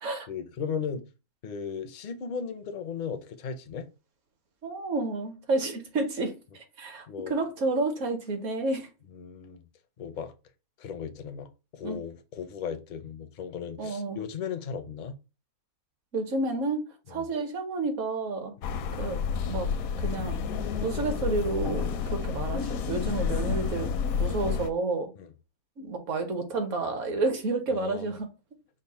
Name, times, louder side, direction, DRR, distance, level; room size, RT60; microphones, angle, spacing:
voice 1, 0.3-1.1 1.4-3.9 7.1-7.4 9.1-9.6 10.0-10.3 10.8-15.2 17.1-17.3 25.2-25.3 27.7-28.1, left 6 dB, 60° left, 0.5 m, -36 dB
voice 2, 4.6-8.9 11.8-12.0 13.8-14.2 16.1-16.8 17.1-18.5 19.0-19.7 20.0-20.4 20.8-23.9 24.2-25.1 25.8-28.3, right 3 dB, 65° right, 1.2 m, -30 dB
sound 1, 18.6-24.7, left 6 dB, 80° left, 1.0 m, -30 dB
5.1 x 2.1 x 4.1 m
omnidirectional pair, 1.5 m